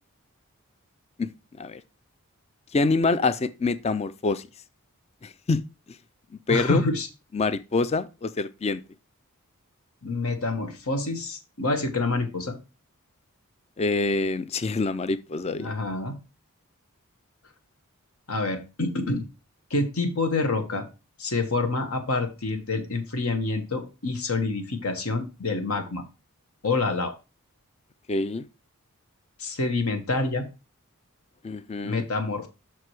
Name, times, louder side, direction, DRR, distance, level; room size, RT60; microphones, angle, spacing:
voice 1, 2.7-4.5 5.2-5.7 6.5-6.8 7.3-8.8 13.8-15.7 28.1-28.5 31.4-32.0, left 3 dB, 30° left, 0.4 m, -26 dB
voice 2, 6.5-7.1 10.0-12.5 15.6-16.2 18.3-19.3 19.7-20.8 21.2-26.0 26.6-27.1 29.4-30.4 31.8-32.5, left 3 dB, 75° left, 1.3 m, -27 dB
6.1 x 4.7 x 4.7 m
head